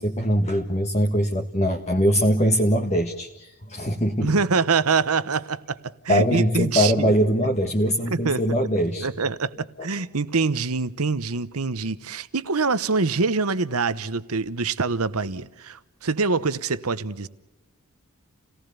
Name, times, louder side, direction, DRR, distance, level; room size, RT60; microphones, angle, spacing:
voice 1, 0.0-4.3 6.1-9.1 9.8-9.9, equal, 30° left, 1.6 m, -22 dB
voice 2, 4.2-7.1 8.1-8.6 9.0-9.5 9.8-17.3, right 4 dB, 75° right, 1.0 m, -25 dB
29.5 x 18.5 x 6.9 m
head